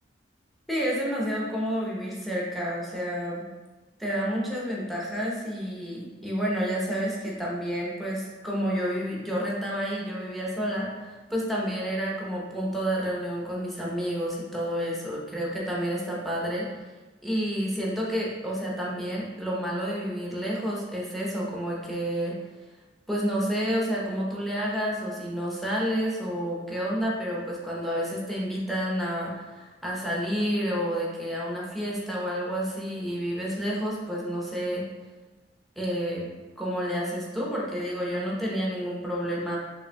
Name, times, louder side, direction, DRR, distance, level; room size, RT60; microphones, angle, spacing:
voice 1, 0.7-3.4 4.0-16.7 17.2-22.3 23.1-34.8 35.8-36.3 36.6-39.6, equal, ahead, -5 dB, 0.8 m, -29 dB
5.4 x 3.2 x 2.2 m, 1.3 s
head